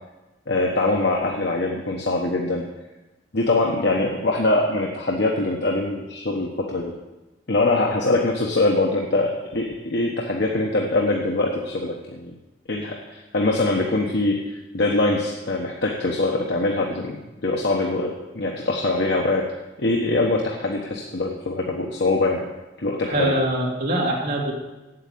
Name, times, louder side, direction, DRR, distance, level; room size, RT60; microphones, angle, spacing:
voice 1, 0.5-2.6 3.3-6.9 7.5-12.3 12.7-14.5 14.7-17.2 17.4-19.4 19.8-22.5 22.8-23.3, left 2 dB, 65° left, 0 dB, 1.1 m, -23 dB
voice 2, 23.0-24.5, right 1 dB, 55° right, -3 dB, 2.8 m, -23 dB
8.7 x 8.0 x 8.4 m, 1.1 s
head